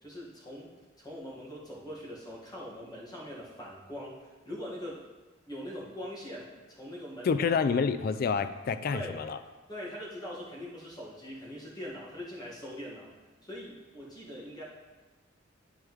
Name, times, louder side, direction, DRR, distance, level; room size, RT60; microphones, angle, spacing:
voice 1, 0.0-0.7 1.0-5.0 5.5-7.4 8.9-9.2 9.7-13.1 13.4-14.7, equal, 20° left, -6 dB, 1.6 m, -42 dB
voice 2, 7.2-9.4, left 5 dB, 50° left, 11 dB, 0.3 m, -28 dB
9.4 x 4.8 x 3.1 m, 1.2 s
head